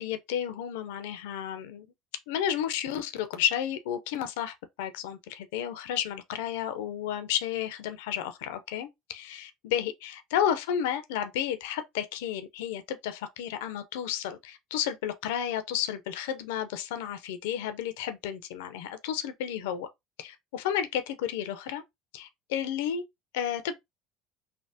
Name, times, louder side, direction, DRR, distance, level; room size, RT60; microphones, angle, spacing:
voice 1, 0.0-1.9 2.3-19.9 20.2-21.8 22.1-23.0 23.3-23.8, left 10 dB, 80° left, 0.5 m, -32 dB
3.3 x 2.1 x 2.7 m
hypercardioid pair, 80°, 0 cm